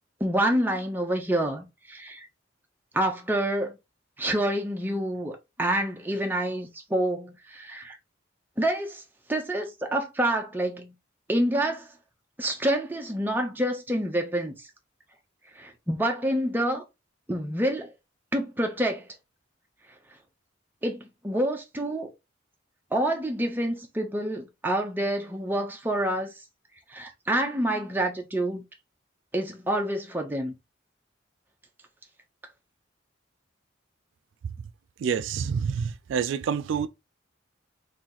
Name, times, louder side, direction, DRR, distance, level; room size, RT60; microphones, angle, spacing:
voice 1, 0.2-2.3 2.9-3.8 4.2-8.0 8.6-9.0 9.3-10.9 11.3-11.9 12.4-14.5 15.6-16.8 17.3-17.9 18.3-19.1 20.8-22.1 22.9-26.3 26.9-28.6 29.3-30.5, right 1 dB, 10° right, 0.6 m, -27 dB
voice 2, 35.0-36.9, right 7 dB, 70° right, 0.3 m, -27 dB
2.9 x 2.7 x 3.9 m
head